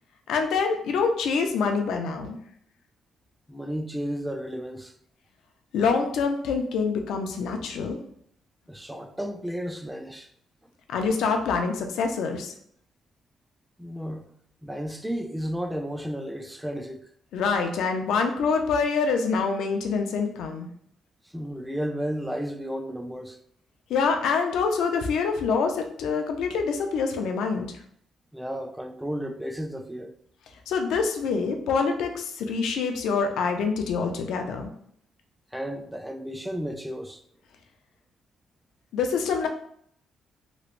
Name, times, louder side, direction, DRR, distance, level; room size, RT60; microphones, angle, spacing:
voice 1, 0.3-2.4 5.7-8.0 10.9-12.5 17.3-20.7 23.9-27.7 30.7-34.7 38.9-39.5, left 5 dB, 80° left, 0.5 m, -26 dB
voice 2, 3.5-4.9 8.7-10.3 13.8-14.3 14.6-17.0 21.3-23.4 28.3-30.1 35.5-37.2, equal, 5° right, 0.3 m, -33 dB
3.0 x 3.0 x 2.5 m
cardioid pair, 90°, 0 cm